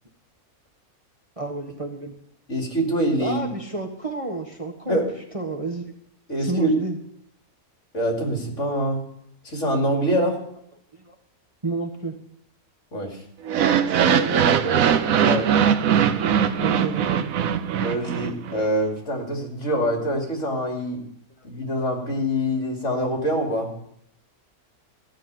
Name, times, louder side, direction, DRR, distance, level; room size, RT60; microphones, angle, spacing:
voice 1, 1.4-2.2 3.2-5.0 5.3-5.9 6.4-7.0 10.9-11.1 11.6-12.1 13.9-14.8 16.6-17.3, right 2 dB, 25° right, 1 dB, 1.3 m, -30 dB
voice 2, 2.5-3.4 4.9-5.1 6.3-6.8 7.9-9.0 9.4-10.4 12.9-13.2 15.2-15.5 17.8-21.0 21.4-23.7, equal, 55° left, 1 dB, 3.0 m, -24 dB
sound 1, 13.4-18.6, right 8 dB, 70° right, 1.1 m, -21 dB
15.5 x 6.5 x 9.1 m, 0.72 s
omnidirectional pair, 1.6 m